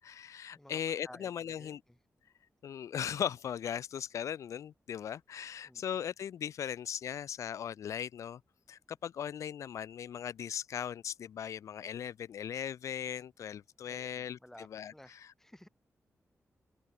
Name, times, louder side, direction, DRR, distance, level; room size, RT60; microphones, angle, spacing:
voice 1, 0.0-1.8 2.6-8.4 8.7-14.4 14.7-14.9, left 9 dB, 80° left, 0.4 m, -38 dB
voice 2, 0.5-2.0 5.6-5.8 13.8-15.7, left 1 dB, 5° left, 3.0 m, -55 dB
open air
wide cardioid pair, 95°, 5 cm